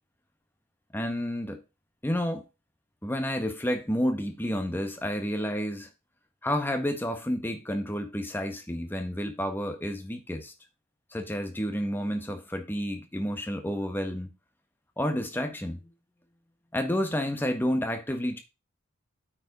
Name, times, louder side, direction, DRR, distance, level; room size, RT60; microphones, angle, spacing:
voice 1, 0.9-1.6 2.0-2.5 3.0-5.9 6.4-10.5 11.1-14.3 15.0-15.9 16.7-18.4, equal, 10° left, 1.2 m, -30 dB
8.7 x 5.0 x 4.9 m
head